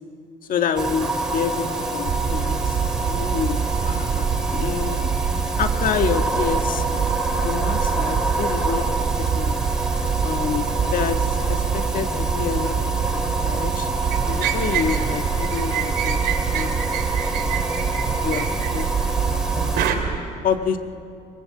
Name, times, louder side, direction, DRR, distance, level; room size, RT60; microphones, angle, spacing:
voice 1, 0.5-1.6 1.9-2.8 3.0-5.1 5.6-9.6 10.2-12.7 13.1-13.9 14.2-16.2 16.5-17.0 17.3-17.6 18.2-18.5 18.7-19.9 20.4-20.8, left 7 dB, 55° left, 7 dB, 1.5 m, -28 dB
sound 1, 0.8-19.9, right 2 dB, 5° right, 3.1 m, -27 dB
sound 2, 2.1-20.2, right 7 dB, 45° right, 1.2 m, -26 dB
sound 3, 14.1-15.1 15.4-18.8 19.8-20.0, right 10 dB, 85° right, 3.0 m, -27 dB
24.0 x 21.5 x 7.7 m, 2.5 s
cardioid pair, 110°, 17 cm